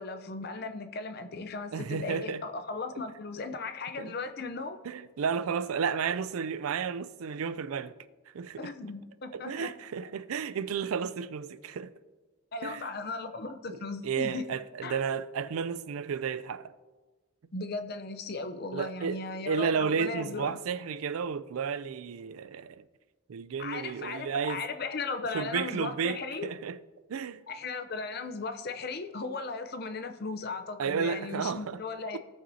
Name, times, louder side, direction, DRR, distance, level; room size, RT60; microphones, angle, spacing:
voice 1, 0.0-4.8 8.6-9.7 12.5-14.4 14.8-15.0 17.5-20.6 23.6-26.5 27.5-32.2, left 3 dB, 50° left, 0.6 m, -37 dB
voice 2, 1.7-2.4 4.0-4.1 4.8-7.9 8.3-8.7 9.3-11.9 12.6-12.9 13.7-16.7 18.7-22.8 23.3-24.6 25.3-26.8 27.1-27.4 30.8-31.8, right 6 dB, 90° right, 0.4 m, -32 dB
17.0 x 6.1 x 2.7 m
head